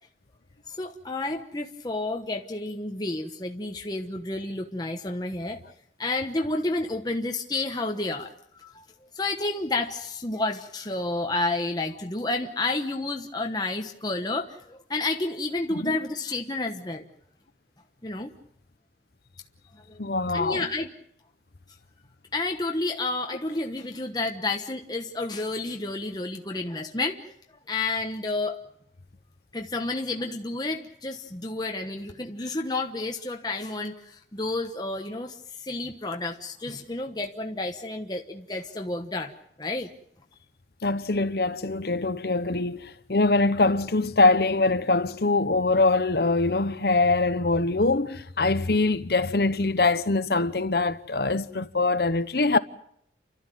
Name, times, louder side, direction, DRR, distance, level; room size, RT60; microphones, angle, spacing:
voice 1, 0.7-5.6 6.0-8.8 9.1-17.1 18.0-18.3 19.9-20.0 20.3-20.9 22.3-27.3 27.7-28.6 29.5-39.3 39.6-39.9, left 2 dB, 20° left, 1.1 m, -30 dB
voice 2, 20.0-20.7 40.8-52.6, left 3 dB, 60° left, 1.0 m, -23 dB
29.5 x 13.0 x 9.2 m
head